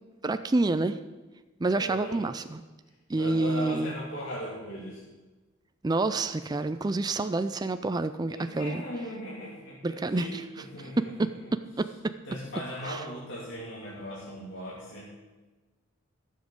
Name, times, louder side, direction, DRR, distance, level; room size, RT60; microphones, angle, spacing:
voice 1, 0.2-1.0 1.6-2.6 3.1-3.9 5.8-8.8 9.8-10.4 11.0-12.1 12.9-13.0, right 2 dB, 20° right, 10 dB, 0.3 m, -28 dB
voice 2, 1.7-2.2 3.1-5.0 8.3-11.5 12.2-15.1, equal, 55° left, -7 dB, 2.9 m, -38 dB
15.0 x 7.4 x 6.4 m, 1.2 s
head